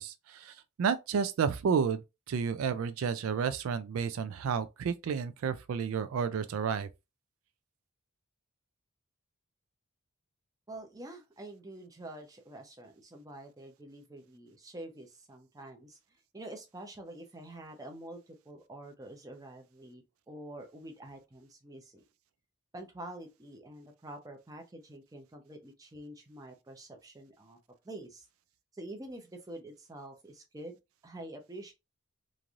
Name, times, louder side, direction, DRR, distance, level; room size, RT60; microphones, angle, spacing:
voice 1, 0.0-2.0 2.3-6.9, right 6 dB, 75° right, 0.3 m, -31 dB
voice 2, 10.7-16.0 16.3-22.0 22.7-27.6 27.8-28.3 28.7-30.8 31.0-31.7, right 1 dB, 15° right, 0.6 m, -47 dB
3.1 x 2.5 x 2.4 m
head